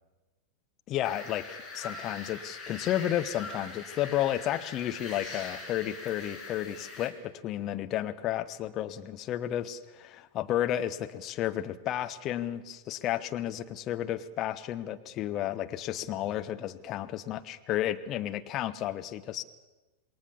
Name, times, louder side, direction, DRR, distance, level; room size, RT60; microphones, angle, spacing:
voice 1, 0.9-19.4, left 12 dB, 35° left, 9 dB, 1.2 m, -32 dB
sound 1, 1.0-7.1, left 3 dB, 15° left, 6.1 m, -42 dB
27.5 x 21.0 x 7.1 m, 1.2 s
figure-of-eight pair, 90°, 0 cm